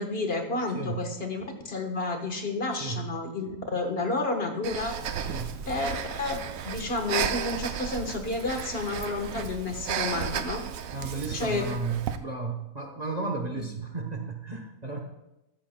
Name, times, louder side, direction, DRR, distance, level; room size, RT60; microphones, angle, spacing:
voice 1, 0.0-5.0 5.7-10.6 11.3-11.6 13.5-13.6, left 3 dB, 45° left, 4 dB, 1.4 m, -31 dB
Breathing, 4.6-12.2, right 8 dB, 75° right, 1.1 m, -34 dB
voice 2, 5.2-5.6 10.9-15.0, right 4 dB, 30° right, 2 dB, 1.0 m, -33 dB
13.5 x 13.5 x 2.2 m, 0.95 s
omnidirectional pair, 1.4 m